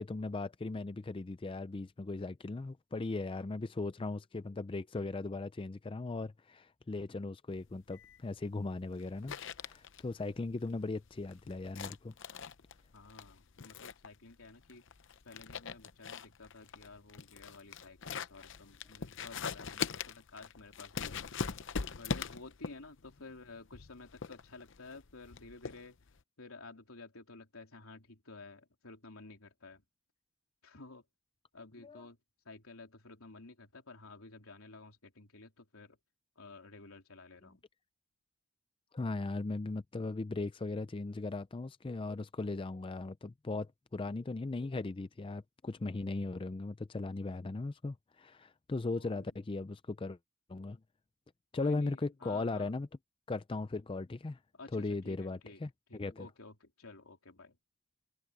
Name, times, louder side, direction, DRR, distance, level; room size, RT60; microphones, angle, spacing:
voice 1, 0.0-12.1 31.8-32.0 38.9-50.2 50.5-50.8 51.5-52.9 53.3-54.4 54.7-56.3, left 3 dB, 25° left, 0.4 m, -38 dB
sound 1, 7.6-26.2, left 5 dB, 60° left, 0.7 m, -42 dB
voice 2, 12.9-14.9 15.2-21.3 22.0-26.0 26.4-29.8 30.6-31.0 31.5-32.2 32.5-36.0 36.4-37.6 49.0-49.3 51.5-52.7 54.5-55.6 55.9-57.6, left 3 dB, 85° left, 3.5 m, -52 dB
head